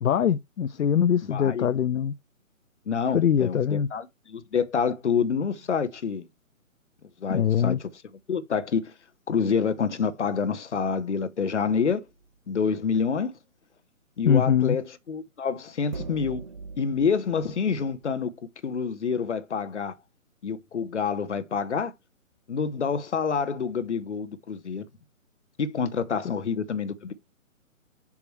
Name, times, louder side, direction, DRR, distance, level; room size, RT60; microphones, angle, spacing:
voice 1, 0.0-2.1 3.1-3.9 7.3-7.8 14.3-14.8, left 8 dB, 75° left, 0.5 m, -22 dB
voice 2, 1.3-1.7 2.9-6.3 7.2-7.9 8.3-8.9 9.3-12.0 12.5-13.4 14.2-16.4 16.8-18.3 18.6-19.9 20.4-21.9 22.5-24.9 25.6-27.1, left 6 dB, 55° left, 0.9 m, -27 dB
sound 1, 11.9-12.2 15.9-18.2, right 4 dB, 35° right, 0.4 m, -41 dB
7.2 x 2.9 x 4.5 m
figure-of-eight pair, 140°, 42 cm